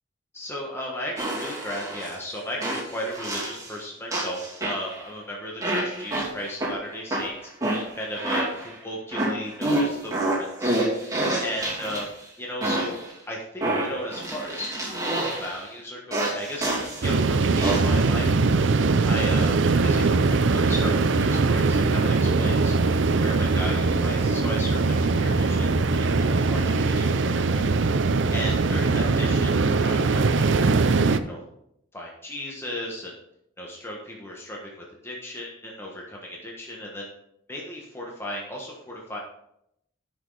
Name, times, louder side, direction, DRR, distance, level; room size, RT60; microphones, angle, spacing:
voice 1, 0.3-7.5 7.9-12.1 12.4-13.0 13.3-14.7 15.0-18.3 19.0-20.2 20.5-22.7 23.2-30.8 31.2-31.4 31.9-33.2 33.6-37.1 37.5-39.2, left 1 dB, 10° left, -2 dB, 1.3 m, -36 dB
sound 1, 1.2-2.1 2.6-3.8 4.1-5.1 5.6-6.7 7.1-8.7 9.1-12.2 12.6-13.1 13.6-15.6 16.1-17.1 17.6-18.0, right 1 dB, 15° right, 2.7 m, -28 dB
sound 2, 17.0-31.2, right 3 dB, 70° right, 0.5 m, -21 dB
10.5 x 6.3 x 4.0 m, 0.77 s
head